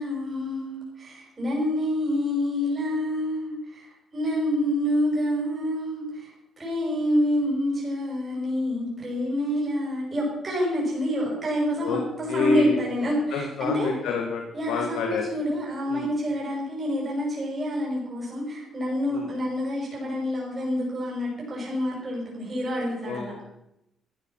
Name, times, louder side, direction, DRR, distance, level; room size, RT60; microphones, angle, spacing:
voice 1, 0.0-13.9 14.5-23.3, equal, 30° right, -3 dB, 6.4 m, -27 dB
voice 2, 12.3-12.8 13.3-15.2 15.9-16.1 19.1-19.3 23.0-23.5, left 5 dB, 90° left, 2 dB, 1.6 m, -28 dB
13.5 x 8.9 x 5.8 m, 0.84 s
cardioid pair, 90°, 0 cm